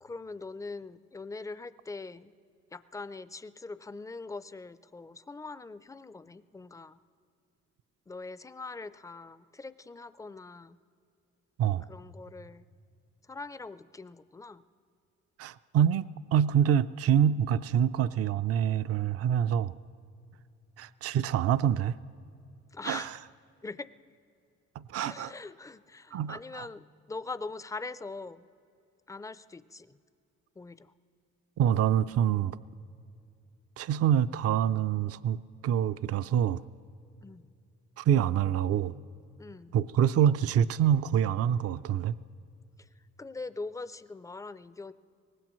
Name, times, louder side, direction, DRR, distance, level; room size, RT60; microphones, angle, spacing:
voice 1, 0.0-2.3 2.7-7.0 8.1-10.8 11.9-12.7 13.2-14.6 22.7-23.2 23.6-23.9 25.0-28.5 29.1-30.0 30.6-30.9 37.2-37.4 39.4-39.8 42.8-42.9 43.2-44.9, left 3 dB, 10° left, 14 dB, 0.4 m, -42 dB
voice 2, 15.4-19.7 20.8-21.9 22.8-23.1 24.8-25.3 26.1-26.7 31.6-32.6 33.8-35.4 35.6-36.6 38.0-38.9 39.7-42.2, right 9 dB, 55° right, 14 dB, 0.4 m, -26 dB
23.5 x 19.0 x 3.1 m, 2.4 s
cardioid pair, 90°, 30 cm